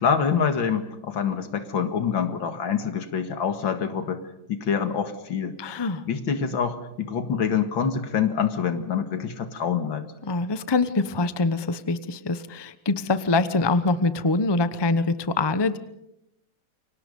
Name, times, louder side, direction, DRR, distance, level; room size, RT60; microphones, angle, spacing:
voice 1, 0.0-4.2 4.5-5.6 6.1-10.1, left 7 dB, 85° left, 8 dB, 2.6 m, -26 dB
voice 2, 5.6-6.0 10.2-15.8, left 3 dB, 20° left, 12 dB, 0.7 m, -24 dB
29.0 x 24.5 x 5.4 m, 0.82 s
omnidirectional pair, 2.1 m